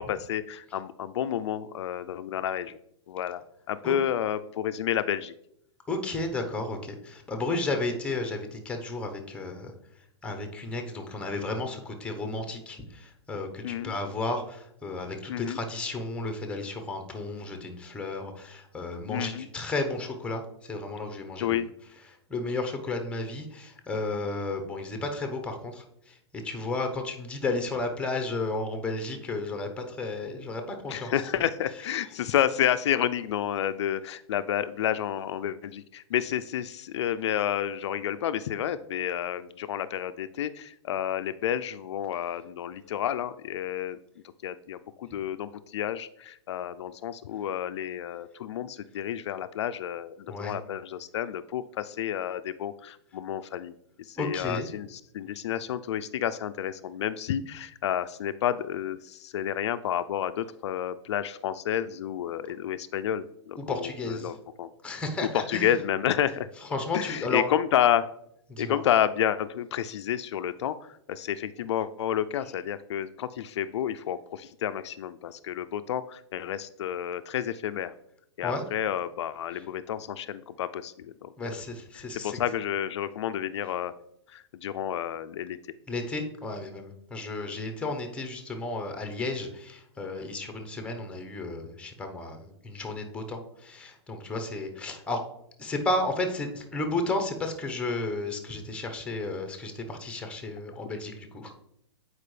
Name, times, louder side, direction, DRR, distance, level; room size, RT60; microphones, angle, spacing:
voice 1, 0.0-2.8 3.1-3.4 3.7-5.3 13.6-13.9 15.3-15.6 19.1-19.5 21.4-21.7 30.9-44.0 44.4-53.7 54.0-64.7 65.3-66.5 66.9-68.1 68.6-77.9 78.4-81.5 81.9-83.9 84.3-85.6, left 10 dB, 75° left, 12 dB, 0.4 m, -30 dB
voice 2, 5.9-9.7 10.2-21.6 22.3-26.2 26.4-31.4 50.3-50.5 54.2-54.7 63.6-64.3 64.8-65.7 66.7-67.5 68.5-68.8 78.4-78.6 79.5-79.6 81.4-82.4 85.9-95.2 95.6-101.6, left 2 dB, 10° left, 5 dB, 0.9 m, -33 dB
8.6 x 4.7 x 3.2 m, 0.76 s
hypercardioid pair, 135°, 15 cm